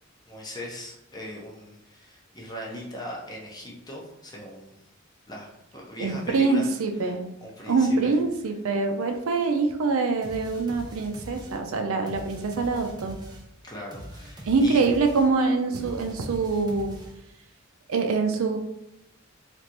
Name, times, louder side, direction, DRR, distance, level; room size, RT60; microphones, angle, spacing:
voice 1, 0.3-4.7 5.3-6.7 7.0-7.1 7.4-8.1 13.6-14.8, equal, 20° left, -3 dB, 0.7 m, -39 dB
voice 2, 6.0-7.2 7.7-13.2 14.4-16.9 17.9-18.6, right 4 dB, 80° right, 5 dB, 0.5 m, -24 dB
sound 1, 10.2-17.4, equal, 20° right, 0.5 m, -43 dB
3.2 x 2.5 x 2.9 m, 0.85 s
head